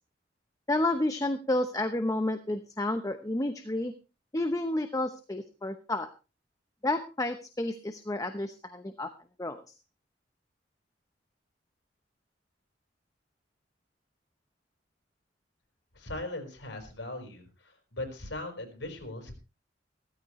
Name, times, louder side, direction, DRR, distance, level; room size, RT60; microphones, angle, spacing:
voice 1, 0.7-3.9 4.3-6.1 6.8-9.1 9.4-9.6, left 1 dB, 20° left, 8 dB, 0.9 m, -30 dB
voice 2, 15.9-17.5 17.9-19.3, left 2 dB, 80° left, 5 dB, 4.9 m, -38 dB
16.0 x 14.0 x 3.2 m, 0.31 s
head